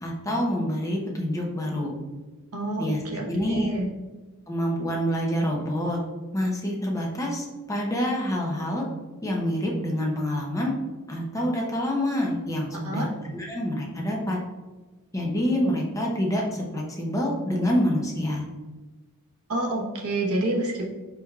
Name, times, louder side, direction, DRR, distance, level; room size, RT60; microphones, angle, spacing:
voice 1, 0.0-2.0 2.8-3.7 4.5-6.0 6.3-8.8 9.2-10.7 11.1-14.4 15.1-18.4, equal, 15° left, -1 dB, 0.7 m, -27 dB
voice 2, 2.5-3.9 12.8-13.1 19.5-20.9, right 2 dB, 80° right, -1 dB, 1.0 m, -28 dB
5.1 x 4.6 x 2.3 m, 1.2 s
head